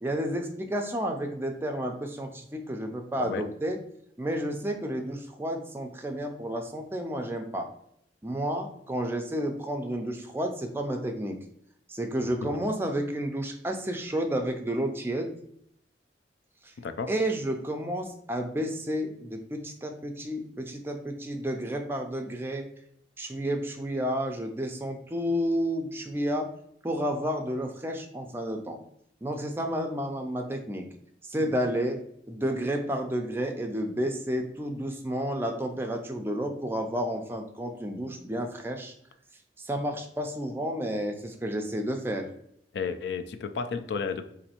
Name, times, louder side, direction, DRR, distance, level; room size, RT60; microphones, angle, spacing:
voice 1, 0.0-3.8 4.2-7.7 8.2-11.4 11.9-15.3 16.6-16.7 17.1-22.7 23.2-26.5 26.8-28.8 29.2-30.9 31.2-32.0 32.3-38.9 39.6-42.3, equal, 15° right, 3 dB, 0.4 m, -31 dB
voice 2, 16.8-17.1 42.7-44.3, left 5 dB, 70° left, 8 dB, 0.3 m, -33 dB
4.1 x 2.6 x 2.8 m, 0.72 s
head